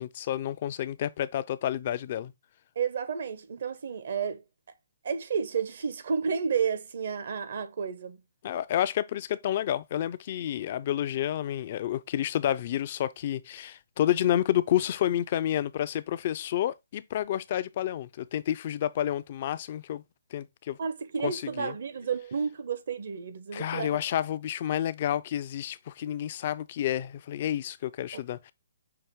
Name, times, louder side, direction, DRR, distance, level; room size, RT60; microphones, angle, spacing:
voice 1, 0.0-2.3 8.4-20.0 20.3-20.8 21.2-21.7 23.5-28.5, left 11 dB, 45° left, 0.4 m, -30 dB
voice 2, 2.8-4.4 5.0-8.2 20.8-24.0, right 6 dB, 65° right, 0.9 m, -31 dB
5.8 x 2.6 x 3.6 m
hypercardioid pair, 145°, 0 cm